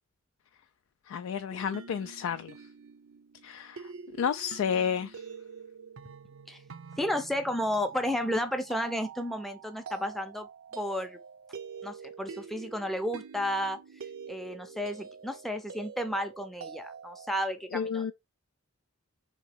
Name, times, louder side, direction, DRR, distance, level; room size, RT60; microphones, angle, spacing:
voice 1, 1.1-2.5 3.4-3.9 4.2-5.2 17.7-18.1, left 7 dB, 90° left, 0.3 m, -31 dB
sound 1, 1.5-17.3, right 5 dB, 75° right, 0.6 m, -46 dB
voice 2, 7.0-10.5 10.7-11.2 11.8-13.8 14.3-18.1, equal, ahead, 0.5 m, -32 dB
3.5 x 2.9 x 4.4 m
head